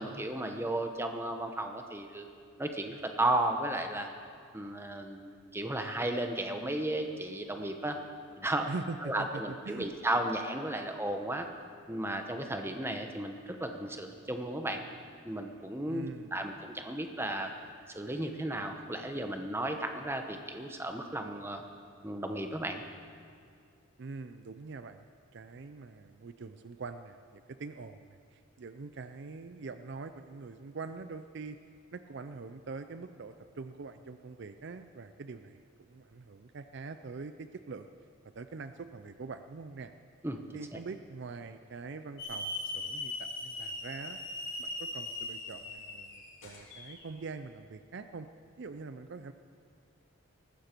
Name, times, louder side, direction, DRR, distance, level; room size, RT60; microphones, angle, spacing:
voice 1, 0.0-2.2 2.6-4.1 4.5-8.0 8.4-8.7 9.0-11.5 11.9-14.8 15.2-17.5 17.9-21.6 22.0-22.8 40.2-40.4 40.7-40.8, right 1 dB, 10° right, 5 dB, 0.9 m, -34 dB
voice 2, 8.7-9.9 15.9-16.4 24.0-25.1 25.3-31.6 31.9-37.9 38.4-39.9 40.5-44.2 44.6-48.3 48.6-49.3, right 4 dB, 55° right, 10 dB, 0.5 m, -44 dB
Hiss / Alarm, 42.2-47.0, left 2 dB, 65° left, 3.2 m, -39 dB
19.0 x 14.5 x 4.5 m, 2.4 s
head